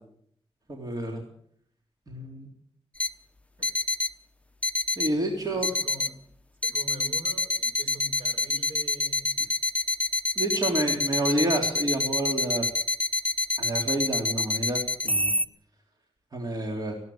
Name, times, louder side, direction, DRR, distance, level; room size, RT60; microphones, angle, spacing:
voice 1, 0.7-1.2 2.1-2.5 3.6-3.7 5.0-5.7 10.4-12.6 13.6-15.3 16.3-16.9, right 1 dB, 40° right, 1 dB, 3.6 m, -29 dB
sound 1, 3.0-3.1 3.6-4.1 4.6-5.1 5.6-6.1 6.6-15.4, left 2 dB, 10° left, 0.9 m, -27 dB
voice 2, 5.4-6.2 6.6-9.3, equal, 60° right, 5 dB, 6.3 m, -44 dB
19.0 x 16.0 x 8.7 m, 0.66 s
wide cardioid pair, 110°, 10 cm